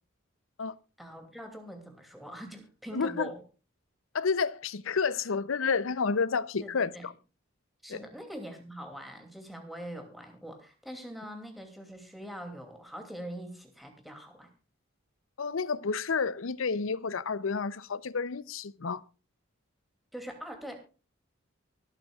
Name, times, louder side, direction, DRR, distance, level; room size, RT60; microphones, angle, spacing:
voice 1, 1.0-3.4 6.6-7.1 7.8-14.5 20.1-20.8, equal, ahead, 2.6 m, -43 dB
voice 2, 2.9-3.3 4.1-7.1 7.9-8.0 15.4-19.0, left 5 dB, 80° left, 0.6 m, -30 dB
24.0 x 9.0 x 2.4 m
head